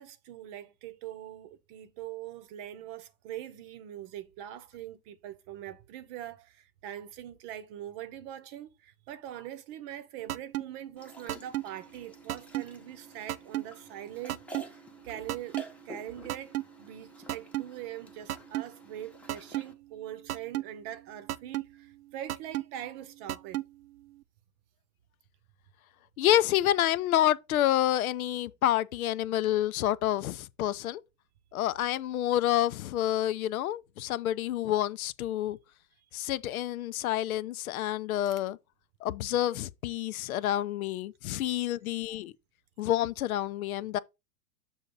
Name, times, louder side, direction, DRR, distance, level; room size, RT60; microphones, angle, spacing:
voice 1, 0.0-14.8 15.0-15.6 15.8-23.6 36.0-36.3 42.1-42.2, right 11 dB, 40° right, 0.9 m, -43 dB
sound 1, 10.3-10.6 11.3-11.6 12.3-12.6 13.3-13.6 14.3-14.6 15.3-15.6 16.3-16.6 17.3-17.6 18.3-18.6 19.3-19.6 20.3-20.6 21.3-21.6 22.3-22.6 23.3-23.6, right 14 dB, 75° right, 0.6 m, -31 dB
sound 2, 11.0-19.7, right 1 dB, 5° left, 0.9 m, -50 dB
voice 2, 26.2-31.0 31.5-35.6 36.1-38.6 39.0-42.3 42.8-44.0, left 12 dB, 70° left, 0.6 m, -28 dB
7.1 x 2.7 x 5.4 m
hypercardioid pair, 110°, 45 cm